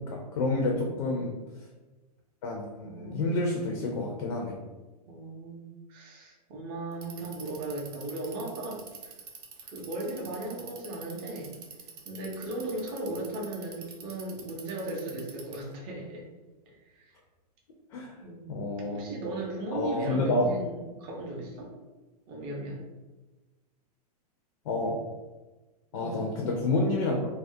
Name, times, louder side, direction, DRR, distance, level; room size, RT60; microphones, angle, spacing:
voice 1, 0.1-1.4 2.4-4.6 17.9-18.1 18.5-19.1 19.7-20.5 24.7-25.1 25.9-27.2, left 2 dB, 55° left, 0 dB, 0.4 m, -29 dB
voice 2, 0.7-1.1 2.8-3.5 5.1-5.6 5.9-9.1 9.6-11.5 12.0-16.2 16.7-17.1 18.2-18.4 18.9-21.7 22.3-22.8 25.9-26.4, right 2 dB, 25° right, -2 dB, 0.5 m, -37 dB
Bicycle, 6.9-15.7, right 6 dB, 70° right, 0.5 m, -46 dB
2.3 x 2.0 x 2.6 m, 1.2 s
supercardioid pair, 160°, 21 cm